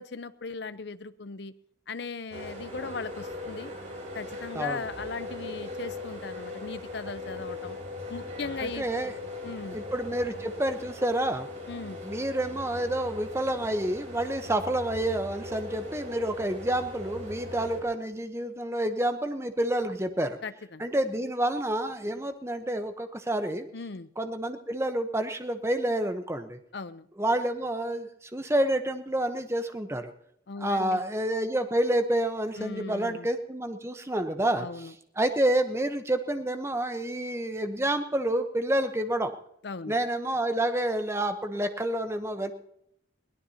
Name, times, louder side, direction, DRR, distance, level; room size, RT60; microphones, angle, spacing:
voice 1, 0.0-1.5 1.9-3.7 4.1-7.8 8.1-9.1 9.4-9.8 11.7-12.0 20.4-20.9 23.7-24.1 26.7-27.1 30.5-31.0 32.6-33.3 34.6-34.9 39.6-39.9, left 4 dB, 55° left, 13 dB, 0.6 m, -38 dB
sound 1, 2.3-17.8, left 2 dB, 35° right, 3.8 m, -40 dB
voice 2, 8.6-9.1 9.7-11.5 12.0-20.4 20.8-23.7 24.2-26.6 27.2-30.1 30.6-34.9 35.2-39.3 39.9-42.5, right 1 dB, 15° right, 8 dB, 0.9 m, -28 dB
22.0 x 17.0 x 2.8 m, 0.75 s
head